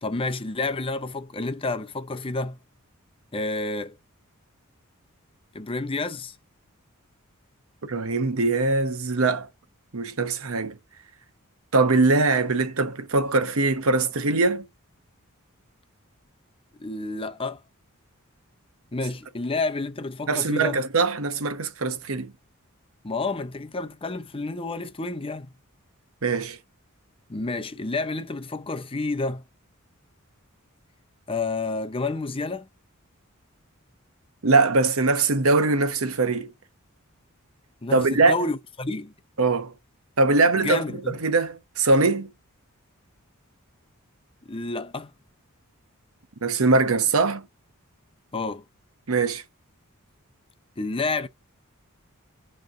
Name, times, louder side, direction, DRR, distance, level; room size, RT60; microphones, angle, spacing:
voice 1, 0.0-2.6 3.3-4.0 5.5-6.3 16.8-17.6 18.9-20.8 23.0-25.5 27.3-29.4 31.3-32.7 37.8-39.1 40.6-41.2 44.4-45.1 48.3-48.6 50.8-51.3, left 3 dB, 25° left, 0.7 m, -30 dB
voice 2, 7.9-9.5 9.9-10.8 11.7-14.7 20.3-22.3 26.2-26.6 34.4-36.5 37.9-38.4 39.4-39.7 40.2-42.3 46.4-47.4 49.1-49.4, right 3 dB, 70° right, 1.0 m, -22 dB
9.1 x 3.3 x 3.7 m
head